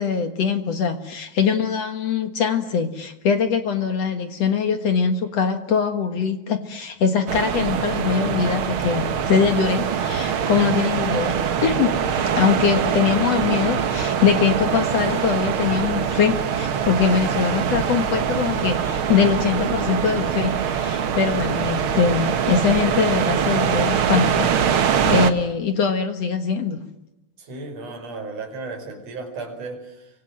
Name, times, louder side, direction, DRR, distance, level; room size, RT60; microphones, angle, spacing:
voice 1, 0.0-11.3 11.6-26.9, left 6 dB, 55° left, 8 dB, 2.1 m, -22 dB
sound 1, 7.3-25.3, right 7 dB, 65° right, 1.3 m, -23 dB
voice 2, 27.4-30.1, right 3 dB, 40° right, 3 dB, 6.0 m, -34 dB
29.5 x 24.5 x 7.6 m, 0.88 s
omnidirectional pair, 4.5 m